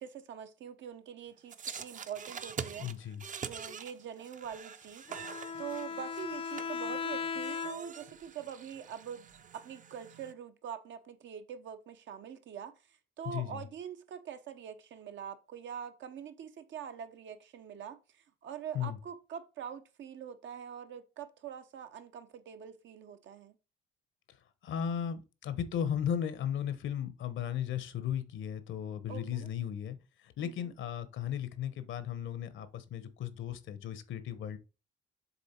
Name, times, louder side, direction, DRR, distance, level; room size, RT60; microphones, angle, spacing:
voice 1, 0.0-2.9 3.4-5.0 5.6-9.3 9.5-12.7 13.2-23.6 29.1-29.5 30.4-30.7, right 8 dB, 70° right, 0.9 m, -44 dB
sound 1, 1.5-10.3, right 6 dB, 40° right, 0.6 m, -45 dB
voice 2, 2.8-3.2 13.2-13.6 18.7-19.0 24.6-30.0 30.2-34.6, left 9 dB, 75° left, 1.0 m, -36 dB
Bowed string instrument, 5.1-8.1, left 6 dB, 30° left, 0.4 m, -38 dB
7.0 x 3.7 x 4.4 m
cardioid pair, 90°, 20 cm